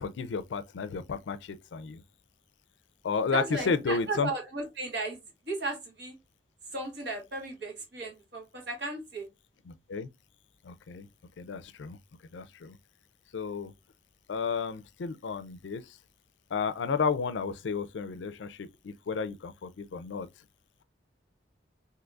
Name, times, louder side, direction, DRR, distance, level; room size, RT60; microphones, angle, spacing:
voice 1, 0.0-2.0 3.0-4.3 9.7-10.1 10.6-11.1 11.4-12.0 12.3-12.8 13.3-13.7 14.3-16.0 16.5-20.3, left 5 dB, 75° left, 0.4 m, -32 dB
voice 2, 3.3-5.2 5.5-6.2 6.7-9.3, right 2 dB, 60° right, 1.3 m, -35 dB
3.8 x 2.7 x 2.3 m
head